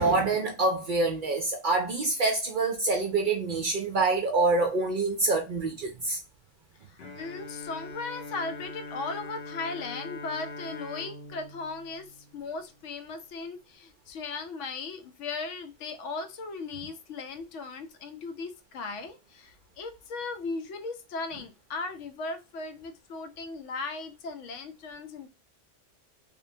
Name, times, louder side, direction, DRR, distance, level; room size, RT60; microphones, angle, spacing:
voice 1, 0.0-6.2, right 3 dB, 60° right, 0.5 m, -26 dB
voice 2, 6.9-25.3, left 3 dB, 80° left, 0.9 m, -37 dB
Bowed string instrument, 7.0-12.9, left 3 dB, 55° left, 0.7 m, -42 dB
2.6 x 2.1 x 2.6 m
omnidirectional pair, 1.2 m